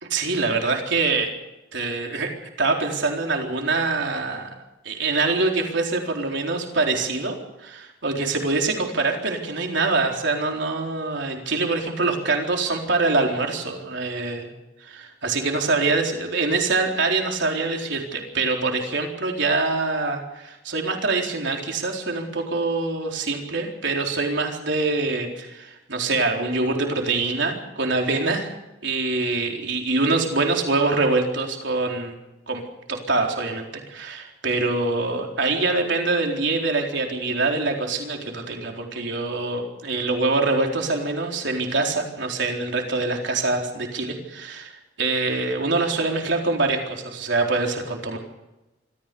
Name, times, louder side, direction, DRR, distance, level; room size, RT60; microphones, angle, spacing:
voice 1, 0.1-1.3 1.7-2.3 2.6-4.6 4.8-14.5 14.8-28.5 28.8-32.1 32.5-32.6 32.9-48.2, right 3 dB, 65° right, 2 dB, 4.1 m, -24 dB
26.0 x 15.0 x 7.0 m, 1.0 s
head